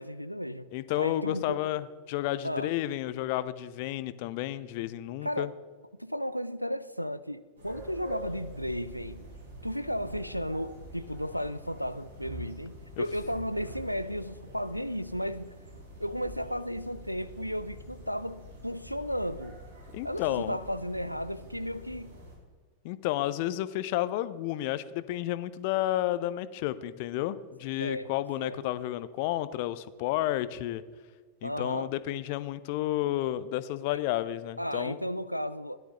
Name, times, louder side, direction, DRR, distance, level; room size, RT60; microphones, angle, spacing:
voice 1, 0.0-0.7 1.0-1.6 2.4-2.7 5.2-5.5 6.0-9.3 9.6-15.6 16.0-19.6 20.0-22.2 27.8-28.1 28.4-28.6 31.4-31.9 34.6-35.8, equal, 90° right, 0.4 m, -34 dB
voice 2, 0.7-5.5 13.0-13.1 19.9-20.6 22.8-30.8 31.4-35.0, left 14 dB, 50° left, 0.6 m, -31 dB
sound 1, 7.6-22.4, equal, 70° right, 3.6 m, -46 dB
16.5 x 11.5 x 3.0 m
figure-of-eight pair, 90°, 0 cm